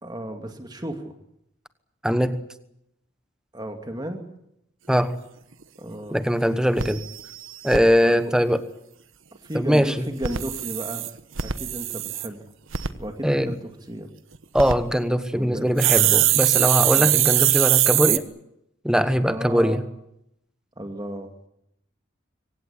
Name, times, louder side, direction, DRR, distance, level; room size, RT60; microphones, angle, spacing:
voice 1, 0.0-1.1 3.5-4.3 5.8-6.2 8.0-8.3 9.4-11.0 11.4-12.4 13.0-13.6 13.9-14.1 15.3-15.7 16.0-16.3 16.9-17.2 19.3-19.8 20.8-21.3, right 1 dB, 20° right, 5 dB, 2.3 m, -34 dB
voice 2, 2.0-2.5 4.9-5.2 6.1-7.0 7.6-8.6 9.5-10.0 13.2-13.5 14.5-18.3 18.8-19.8, equal, 5° right, 11 dB, 1.2 m, -21 dB
sound 1, 5.6-5.7 6.1-6.2 6.4-6.5 6.8-7.8 10.1-12.3 12.7-12.9 14.3-14.7 15.8-18.2, right 13 dB, 75° right, 1.2 m, -22 dB
24.0 x 17.5 x 9.8 m, 0.82 s
head